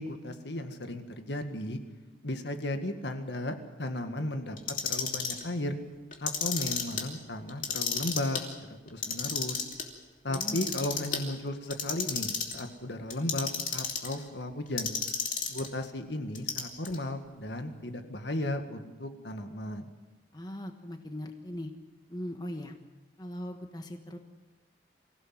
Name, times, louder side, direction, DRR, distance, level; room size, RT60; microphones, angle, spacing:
voice 1, 0.0-1.8 2.2-4.6 4.9-5.8 6.2-8.5 8.9-9.6 10.2-14.9 15.5-19.9, left 1 dB, 65° left, 7 dB, 1.9 m, -35 dB
Clock, 4.6-5.4 6.1-7.0 7.5-8.4 8.9-9.8 10.3-11.2 11.7-12.6 13.1-14.1 14.8-15.7 16.3-17.0, left 6 dB, 45° left, 2.9 m, -32 dB
voice 2, 10.3-11.1 20.3-21.7 22.1-22.7 23.2-24.2, left 1 dB, 20° left, 5 dB, 1.3 m, -40 dB
25.5 x 16.5 x 7.7 m, 1.1 s
head